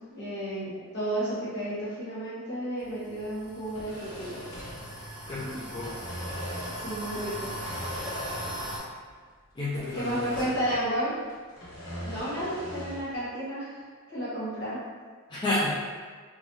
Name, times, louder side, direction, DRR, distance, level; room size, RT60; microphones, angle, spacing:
voice 1, 0.0-4.4 6.7-7.5 9.9-11.1 12.0-13.8 14.1-14.8, right 1 dB, 50° left, -10 dB, 1.4 m, -32 dB
sound 1, 2.8-8.8, equal, 25° right, 0.8 m, -39 dB
sound 2, 3.6-5.4 5.7-6.9 7.4-8.8 9.1-9.2 9.7-11.0 11.3-13.1, equal, 70° left, 1.0 m, -40 dB
voice 2, 5.3-6.0 9.5-10.5 15.3-16.0, left 1 dB, 20° left, -10 dB, 0.4 m, -31 dB
3.2 x 2.3 x 2.7 m, 1.5 s
head